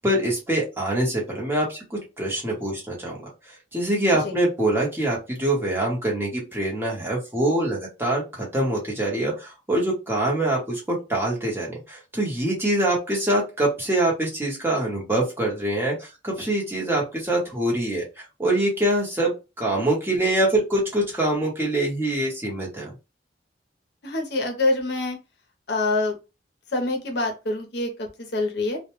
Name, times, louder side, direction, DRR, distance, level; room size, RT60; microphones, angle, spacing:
voice 1, 0.0-3.2 3.5-22.9, right 1 dB, 10° right, -3 dB, 0.8 m, -24 dB
voice 2, 24.0-25.2 25.7-26.1 26.7-28.8, left 2 dB, 60° left, 3 dB, 0.6 m, -25 dB
2.1 x 2.1 x 2.9 m, 0.28 s
head